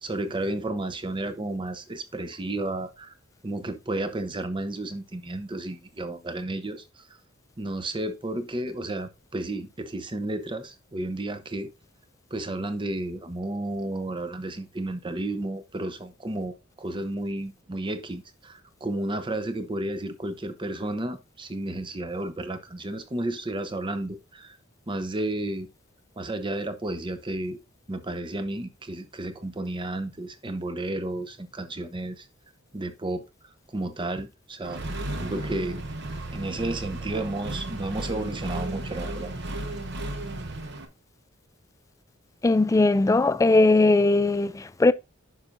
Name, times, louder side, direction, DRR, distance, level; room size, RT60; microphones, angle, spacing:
voice 1, 0.0-3.1 3.4-7.0 7.6-11.7 12.3-24.6 24.9-25.7 26.2-27.6 27.9-32.3 32.7-33.2 33.7-34.8 35.2-35.8 36.3-39.3, right 1 dB, 25° right, 0.8 m, -32 dB
Accelerating revving vroom, 34.6-40.8, right 1 dB, 60° right, 1.2 m, -34 dB
voice 2, 42.4-44.9, left 2 dB, 15° left, 0.3 m, -19 dB
9.6 x 5.9 x 2.6 m
head